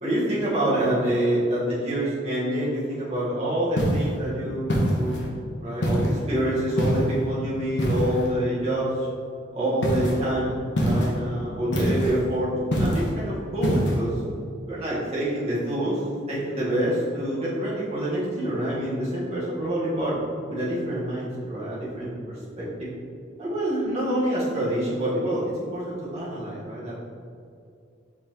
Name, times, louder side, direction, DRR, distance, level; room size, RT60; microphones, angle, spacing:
voice 1, 0.0-5.2 5.6-9.1 9.5-12.5 12.8-14.1 14.7-16.0 16.3-20.1 20.5-22.6 23.4-25.4 25.7-26.9, right 1 dB, 35° right, -9 dB, 1.2 m, -26 dB
sound 1, 3.8-4.1 4.7-5.3 5.8-6.2 6.8-7.2 7.8-8.3 9.8-10.2 10.8-11.2 11.7-12.2 12.7-13.1 13.6-14.0, equal, 65° left, 0.8 m, -24 dB
5.3 x 3.5 x 2.8 m, 2.4 s
head